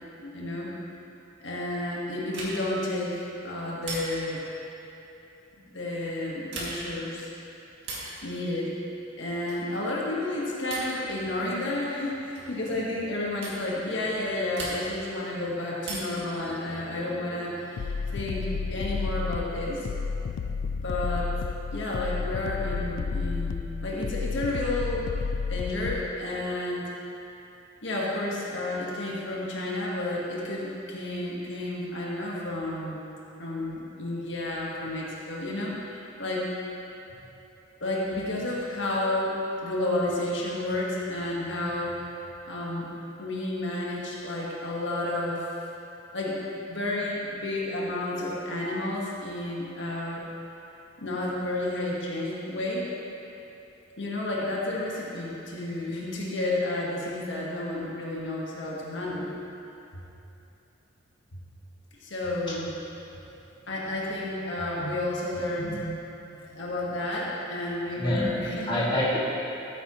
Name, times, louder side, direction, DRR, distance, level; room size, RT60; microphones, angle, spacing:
voice 1, 0.2-0.7 1.4-4.4 5.6-7.3 8.2-8.7 9.2-19.9 20.8-21.3 21.7-25.1 25.5-26.8 27.8-33.0 33.4-36.5 37.8-42.1 42.5-42.9 43.2-45.5 46.1-50.2 51.0-52.9 54.0-59.3 62.0-62.7 63.7-65.7 66.5-68.7, left 1 dB, 65° left, -4 dB, 1.5 m, -31 dB
sound 1, 2.3-2.8 3.8-4.4 6.4-7.0 7.8-8.2 9.5-9.8 10.7-11.0 12.3-12.6 13.4-13.6 14.5-15.1 15.8-16.3 17.8-18.5, right 2 dB, 60° right, 2.3 m, -38 dB
sound 2, 17.8-26.1, left 5 dB, 85° left, 0.3 m, -31 dB
voice 2, 66.2-66.6 68.0-68.4 68.7-69.2, left 1 dB, 25° left, -7 dB, 1.8 m, -28 dB
14.5 x 9.2 x 3.0 m, 2.9 s
head